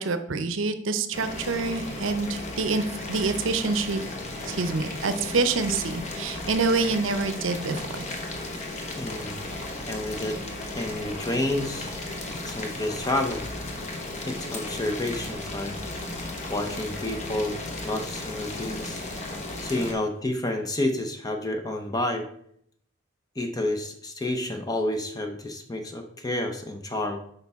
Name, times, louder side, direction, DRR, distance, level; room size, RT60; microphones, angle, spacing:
voice 1, 0.0-4.0 4.4-8.1, right 4 dB, 70° right, 10 dB, 0.7 m, -27 dB
Boiling, 1.1-19.9, left 2 dB, 35° left, 1.2 m, -35 dB
voice 2, 9.0-9.4 9.9-10.4 10.7-11.9 12.4-13.4 14.2-15.8 16.5-17.6 17.8-19.0 19.6-22.3 23.4-27.2, left 1 dB, 20° left, 5 dB, 0.6 m, -29 dB
8.4 x 5.3 x 3.5 m, 0.68 s
head